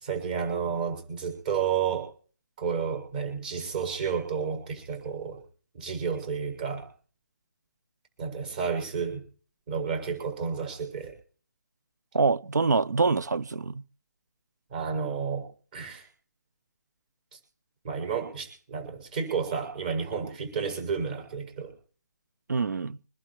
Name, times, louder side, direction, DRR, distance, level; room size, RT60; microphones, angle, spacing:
voice 1, 0.0-2.1 2.6-5.4 5.7-6.8 8.2-9.2 9.7-11.1 14.7-15.4 15.7-16.0 17.8-21.7, right 6 dB, 25° right, 7.4 m, -31 dB
voice 2, 12.1-13.8 22.5-23.0, right 4 dB, 75° right, 1.1 m, -25 dB
26.5 x 11.5 x 3.2 m
hypercardioid pair, 170°, 9 cm